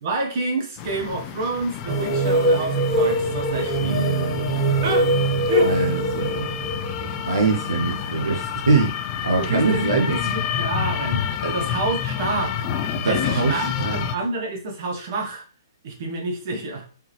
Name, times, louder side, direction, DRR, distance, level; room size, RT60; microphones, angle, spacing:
voice 1, 0.0-4.1 4.8-5.1 5.5-5.7 9.4-12.7 13.0-15.4 15.8-16.9, right 2 dB, 40° right, 3 dB, 1.1 m, -28 dB
sound 1, 0.8-14.2, left 8 dB, 25° left, 0.3 m, -29 dB
sound 2, 1.9-8.3, right 1 dB, 10° right, 0.8 m, -23 dB
voice 2, 3.8-4.7 5.6-6.5 7.2-10.2 11.4-11.5 13.0-14.1, right 4 dB, 70° right, -1 dB, 0.8 m, -23 dB
3.5 x 3.3 x 3.1 m, 0.40 s
figure-of-eight pair, 120°, 2 cm